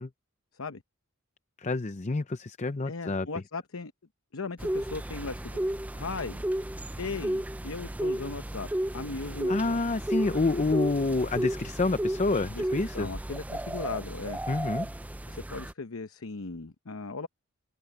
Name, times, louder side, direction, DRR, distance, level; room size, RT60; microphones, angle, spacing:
voice 1, 1.6-3.3 9.5-13.1 14.5-14.9, left 3 dB, 35° left, 0.6 m, -28 dB
voice 2, 2.9-3.9 4.3-5.6 5.9-6.4 7.0-8.7 8.9-9.8 12.5-12.7 12.9-14.4 15.3-17.3, left 4 dB, 65° left, 0.9 m, -37 dB
sound 1, 4.6-15.7, right 1 dB, 5° right, 0.4 m, -33 dB
head